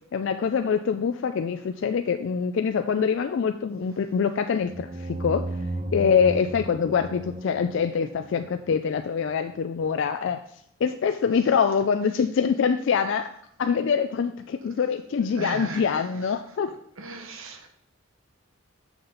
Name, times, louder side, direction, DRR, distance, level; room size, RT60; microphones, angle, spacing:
voice 1, 0.1-5.5 5.9-10.4 10.8-13.3 13.6-16.7, left 6 dB, 60° left, 8 dB, 0.3 m, -24 dB
sound 1, 4.7-9.2, right 1 dB, 25° right, 0.4 m, -35 dB
voice 2, 15.2-15.9 17.0-17.7, right 3 dB, 75° right, 5 dB, 0.9 m, -37 dB
7.0 x 5.8 x 3.9 m, 0.70 s
head